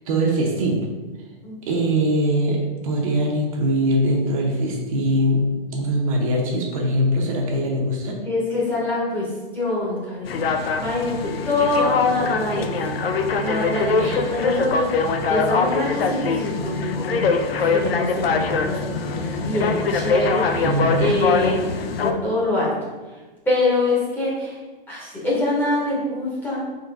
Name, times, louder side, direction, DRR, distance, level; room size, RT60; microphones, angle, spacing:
voice 1, 0.1-0.8 1.7-8.2 14.0-14.2 20.6-21.2, right 1 dB, 35° right, -1 dB, 0.7 m, -22 dB
voice 2, 8.2-9.3 9.5-12.9 13.4-21.7 22.0-22.7 23.5-24.6 24.9-26.6, left 2 dB, 5° left, -7 dB, 0.8 m, -25 dB
sound 1, 10.3-22.1, left 4 dB, 80° left, 0.6 m, -23 dB
3.8 x 3.0 x 4.5 m, 1.2 s
hypercardioid pair, 155°, 29 cm